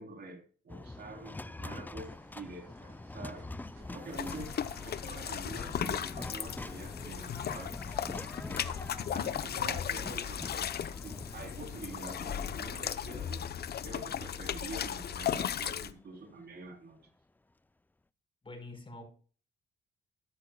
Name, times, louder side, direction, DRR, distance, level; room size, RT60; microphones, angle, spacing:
voice 1, 0.0-3.5 3.9-8.3 9.1-13.5 13.8-17.0, right 2 dB, 55° right, 2 dB, 3.5 m, -46 dB
sound 1, 0.7-16.9, left 2 dB, 10° left, 0.4 m, -46 dB
sound 2, 2.0-7.5, right 3 dB, 75° right, 5.8 m, -62 dB
sound 3, 4.1-15.9, left 9 dB, 55° left, 0.8 m, -36 dB
voice 2, 18.4-19.0, left 2 dB, 25° left, 5 dB, 4.6 m, -45 dB
13.0 x 11.5 x 2.3 m, 0.41 s
cardioid pair, 90°, 20 cm